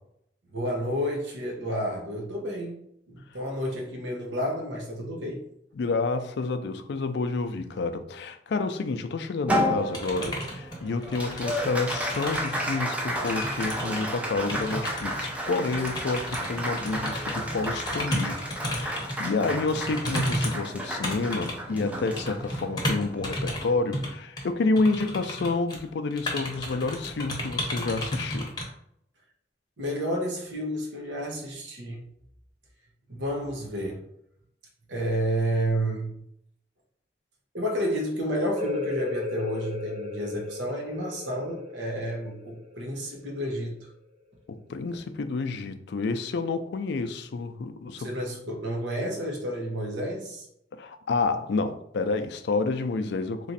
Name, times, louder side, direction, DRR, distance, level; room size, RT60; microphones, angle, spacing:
voice 1, 0.5-5.4 19.4-19.6 29.8-32.0 33.1-34.0 34.9-36.2 37.5-43.9 48.0-50.5, equal, 75° right, 1.0 m, -31 dB
voice 2, 5.8-28.5 44.5-48.1 50.7-53.5, left 3 dB, 65° left, 0.4 m, -29 dB
Applause, 9.5-24.1, equal, 10° right, 0.5 m, -32 dB
sound 1, 9.9-12.8 13.0-19.3 19.6-23.6 23.9-24.1 24.4-24.5 24.8-25.8 26.1-28.6, left 1 dB, 25° left, 0.8 m, -33 dB
sound 2, 38.5-43.9, left 3 dB, 35° right, 0.8 m, -35 dB
3.0 x 2.5 x 4.0 m
head